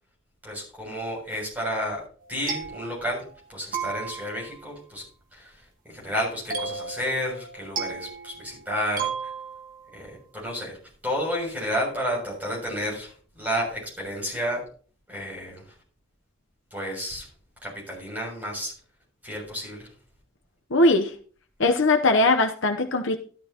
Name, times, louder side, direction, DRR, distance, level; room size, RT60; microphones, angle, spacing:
voice 1, 0.4-2.0 2.3-3.2 3.5-9.3 9.9-10.8 11.0-14.6 15.1-15.6 16.7-17.3 17.6-18.7 19.2-19.9, equal, 5° right, -4 dB, 7.0 m, -31 dB
sound 1, 2.2-3.4 3.7-4.6 6.5-9.9, right 6 dB, 40° right, 1.6 m, -34 dB
voice 2, 20.7-21.1 21.6-23.2, left 2 dB, 55° left, 5 dB, 0.8 m, -20 dB
13.5 x 12.5 x 2.9 m, 0.43 s
head